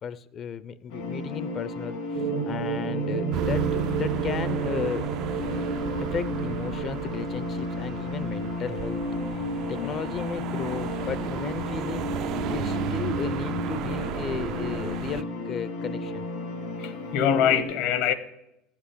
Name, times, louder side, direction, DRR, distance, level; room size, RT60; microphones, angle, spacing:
voice 1, 0.0-5.1 6.0-9.2 9.7-12.1 12.5-16.3, left 7 dB, 35° left, 0.5 m, -34 dB
sound 1, 0.9-17.6, left 2 dB, 90° left, 3.0 m, -33 dB
sound 2, 2.2-7.3, right 9 dB, 75° right, 0.8 m, -31 dB
sound 3, 3.3-15.2, right 13 dB, 55° right, 0.3 m, -35 dB
voice 2, 16.8-18.1, left 8 dB, 65° left, 1.0 m, -23 dB
14.0 x 6.0 x 8.3 m
cardioid pair, 140°, 0 cm